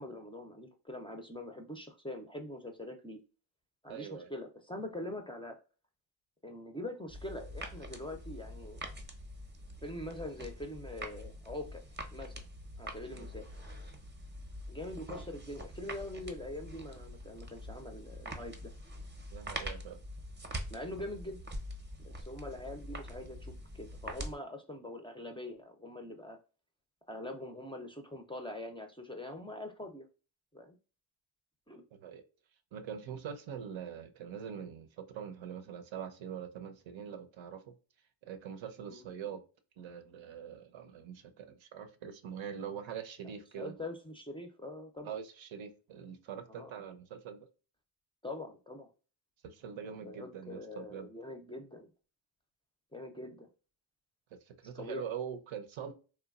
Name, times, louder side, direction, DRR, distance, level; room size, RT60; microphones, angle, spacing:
voice 1, 0.0-3.2 3.8-5.6 6.4-8.8 9.8-11.8 12.1-12.3 12.8-13.5 14.7-18.7 20.7-21.4 22.0-26.4 27.1-30.1 30.5-30.8 31.7-31.8 38.9-39.0 43.6-45.2 46.5-46.8 48.2-48.9 50.0-51.9 52.9-53.5 54.7-55.1, left 1 dB, 10° left, 0.4 m, -43 dB
voice 2, 3.9-4.3 13.1-13.3 19.3-20.0 31.9-32.2 32.7-37.8 38.2-39.4 39.8-43.8 45.0-47.5 49.4-51.1 54.5-55.9, right 8 dB, 70° right, 0.7 m, -43 dB
sound 1, 7.1-24.3, equal, 20° right, 0.7 m, -44 dB
3.0 x 2.2 x 2.3 m
cardioid pair, 75°, 48 cm